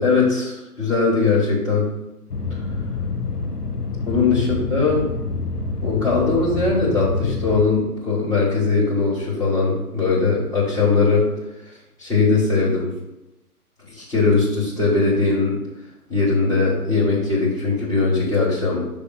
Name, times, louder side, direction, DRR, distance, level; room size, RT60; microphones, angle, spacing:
voice 1, 0.0-1.9 4.0-5.1 5.8-11.3 12.0-12.9 13.9-15.6 16.1-18.9, left 4 dB, 10° left, -9 dB, 1.3 m, -20 dB
sound 1, 2.3-7.6, left 3 dB, 85° left, 0.9 m, -27 dB
6.2 x 3.4 x 5.7 m, 0.93 s
figure-of-eight pair, 130°, 45 cm